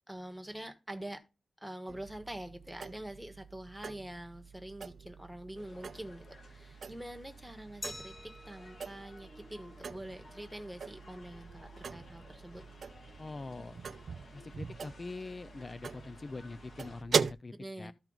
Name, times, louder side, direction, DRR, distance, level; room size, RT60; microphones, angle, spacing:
voice 1, 0.1-1.2 1.6-12.7 17.5-17.9, right 1 dB, 5° right, 1.3 m, -45 dB
sound 1, 1.9-17.3, right 5 dB, 70° right, 0.4 m, -41 dB
sound 2, 5.5-17.0, left 2 dB, 65° left, 1.9 m, -57 dB
Glass, 7.8-10.5, left 1 dB, 20° left, 1.3 m, -49 dB
voice 2, 13.2-13.8 14.3-17.9, left 3 dB, 35° left, 0.3 m, -44 dB
13.5 x 4.5 x 3.9 m
wide cardioid pair, 100°, 0 cm